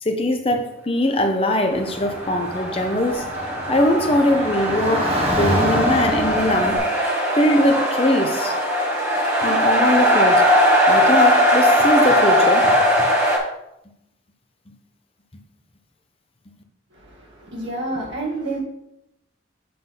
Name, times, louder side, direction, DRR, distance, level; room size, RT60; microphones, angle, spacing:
voice 1, 0.0-3.3 3.7-6.8 7.3-8.5 9.4-13.1, left 1 dB, 30° left, 0.8 m, -21 dB
Car / Traffic noise roadway noise, 1.7-6.8, equal, 30° right, 1.6 m, -27 dB
sound 1, 1.9-13.4, equal, 10° right, 1.5 m, -19 dB
voice 2, 16.9-18.6, right 2 dB, 60° right, 2.3 m, -29 dB
7.7 x 3.8 x 5.6 m
head